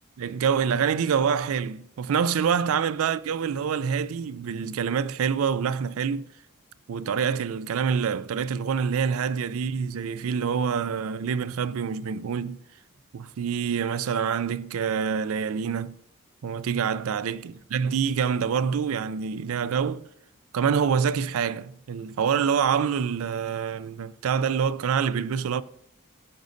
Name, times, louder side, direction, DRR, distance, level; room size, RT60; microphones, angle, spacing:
voice 1, 0.2-6.3 6.9-12.6 13.1-16.0 16.4-20.0 20.5-25.6, right 7 dB, 85° right, 0.4 m, -26 dB
14.0 x 5.3 x 2.6 m
head